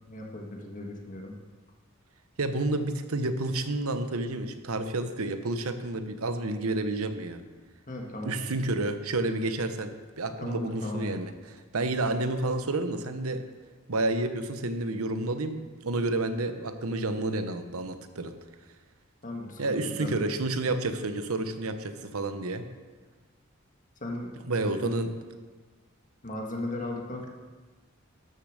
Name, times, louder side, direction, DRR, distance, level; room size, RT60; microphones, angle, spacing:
voice 1, 0.1-1.4 7.9-8.4 10.3-11.2 19.2-20.3 24.0-24.3 24.6-24.9 26.2-27.3, left 1 dB, 35° left, 1 dB, 1.7 m, -37 dB
voice 2, 2.4-7.4 8.2-11.3 11.7-13.4 13.9-18.3 19.6-22.6 24.5-25.1, right 2 dB, 80° right, 8 dB, 0.9 m, -30 dB
12.5 x 6.7 x 6.6 m, 1.4 s
head